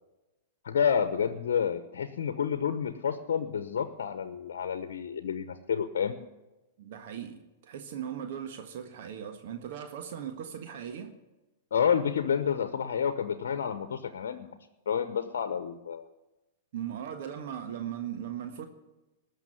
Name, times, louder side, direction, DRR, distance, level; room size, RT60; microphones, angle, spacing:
voice 1, 0.6-6.1 11.7-14.5 14.9-16.0, left 7 dB, 65° left, 10 dB, 1.0 m, -29 dB
voice 2, 6.8-11.1 16.7-18.7, right 9 dB, 60° right, 6 dB, 1.6 m, -38 dB
19.5 x 6.5 x 9.3 m, 1.0 s
hypercardioid pair, 105°, 0 cm